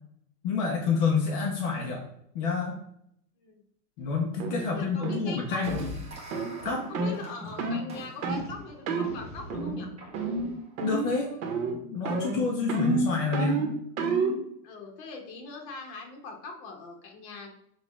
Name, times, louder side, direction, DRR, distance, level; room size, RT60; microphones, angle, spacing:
voice 1, 0.4-2.0 2.3-2.8 4.0-5.9 6.6-6.8 10.8-11.3 11.8-13.7, left 5 dB, 30° left, 0 dB, 0.4 m, -28 dB
sound 1, 4.4-4.6 5.0-5.3 5.7-5.9 6.3-6.5 6.9-7.2 7.6-7.8 8.2-8.5 8.9-9.1 9.5-9.9 10.1-10.5 10.8-11.2 11.4-11.8 12.1-14.4, right 3 dB, 55° right, 0.9 m, -29 dB
voice 2, 4.5-5.6 6.9-9.9 12.6-12.8 14.6-17.5, left 3 dB, 45° left, 2 dB, 1.1 m, -42 dB
sound 2, 5.6-11.4, left 1 dB, 15° right, 0.7 m, -43 dB
6.1 x 2.3 x 3.1 m, 0.74 s
supercardioid pair, 150°, 48 cm